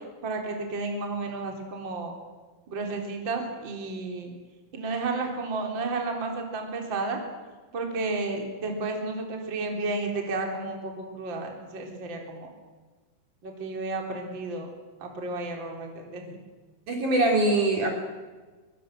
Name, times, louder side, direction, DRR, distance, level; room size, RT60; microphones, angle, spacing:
voice 1, 0.2-2.1 2.7-4.3 4.7-7.2 7.7-12.5 13.4-14.7 15.0-16.4, right 3 dB, 25° right, 2 dB, 3.6 m, -32 dB
voice 2, 16.9-17.9, right 2 dB, 45° right, 2 dB, 4.3 m, -22 dB
25.0 x 23.0 x 7.7 m, 1.3 s
omnidirectional pair, 5.7 m